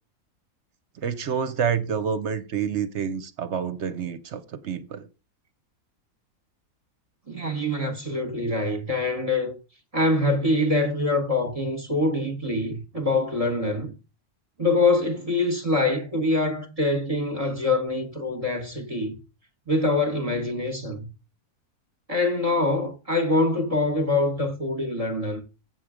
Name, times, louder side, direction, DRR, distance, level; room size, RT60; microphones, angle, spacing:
voice 1, 1.0-5.1, right 7 dB, 60° right, 0.9 m, -28 dB
voice 2, 7.3-9.5 9.9-13.9 14.6-19.1 19.7-21.1 22.1-25.4, left 2 dB, 30° right, 1.0 m, -24 dB
7.8 x 6.1 x 4.9 m
omnidirectional pair, 1.5 m